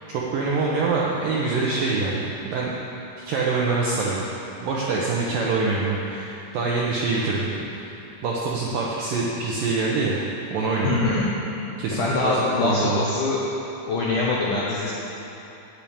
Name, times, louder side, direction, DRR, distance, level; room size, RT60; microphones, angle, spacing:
voice 1, 0.1-2.7 3.3-4.2 4.6-7.5 7.8-8.0 8.2-10.2 10.5-11.0 11.8-13.0, right 3 dB, 80° right, -4 dB, 2.0 m, -25 dB
voice 2, 10.8-11.3 11.9-13.4 13.9-14.9, left 3 dB, 75° left, -6 dB, 1.9 m, -23 dB
9.0 x 8.1 x 8.6 m, 3.0 s
omnidirectional pair, 5.2 m